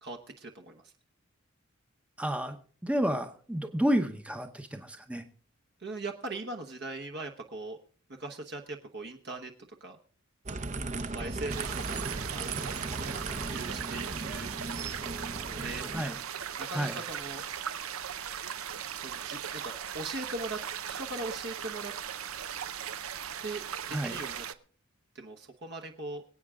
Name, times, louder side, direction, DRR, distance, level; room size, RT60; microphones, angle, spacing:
voice 1, 0.0-0.9 5.8-7.8 8.2-9.5 9.8-10.0 11.1-12.0 12.3-12.5 13.3-14.5 15.5-15.9 16.6-17.4 19.0-20.6 20.9-21.9 23.4-24.4 25.1-26.2, right 2 dB, 50° right, 4 dB, 1.1 m, -40 dB
voice 2, 2.2-2.6 2.8-5.2 15.9-16.2 16.7-17.0 23.9-24.1, equal, 5° right, 7 dB, 0.8 m, -30 dB
sound 1, 10.5-16.1, right 3 dB, 35° right, 0.7 m, -37 dB
sound 2, 11.5-24.5, right 8 dB, 80° right, 0.7 m, -38 dB
25.0 x 8.8 x 3.6 m, 0.43 s
head